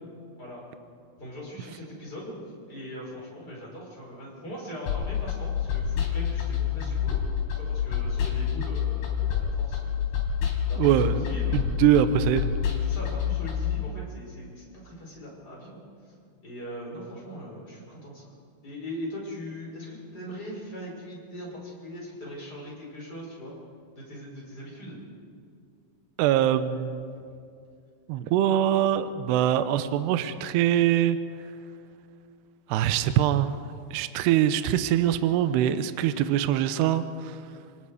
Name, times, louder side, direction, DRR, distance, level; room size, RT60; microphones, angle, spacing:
voice 1, 1.2-2.3 2.7-7.2 7.5-10.0 10.7-11.6 12.8-15.8 16.4-18.3 18.6-23.5 24.0-25.0, equal, 20° left, -4 dB, 5.6 m, -40 dB
sound 1, 4.9-13.8, left 8 dB, 60° left, 5.2 m, -28 dB
voice 2, 10.8-12.5 26.2-27.1 28.1-31.2 32.7-33.6 33.9-37.4, right 11 dB, 80° right, 11 dB, 2.5 m, -23 dB
28.5 x 18.5 x 4.9 m, 2.4 s
omnidirectional pair, 5.5 m